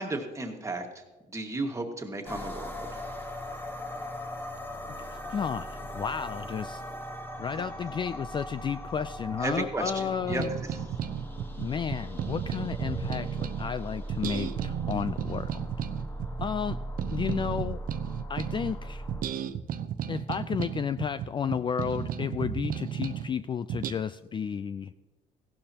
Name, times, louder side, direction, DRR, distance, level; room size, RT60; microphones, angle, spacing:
voice 1, 0.0-3.0 9.4-10.4 10.7-10.8, right 2 dB, 15° right, 3 dB, 1.8 m, -34 dB
sound 1, 2.2-19.2, equal, 10° left, 1.3 m, -39 dB
voice 2, 4.9-6.8 7.4-10.5 11.6-15.6 16.4-16.8 17.1-17.8 18.3-19.0 20.1-24.9, left 7 dB, 30° left, 13 dB, 0.3 m, -32 dB
sound 2, 10.2-13.7 14.1-18.8 19.1-23.3 23.7-23.9, right 9 dB, 55° right, 0.7 m, -33 dB
16.5 x 11.5 x 2.9 m, 1.2 s
cardioid pair, 110°, 17 cm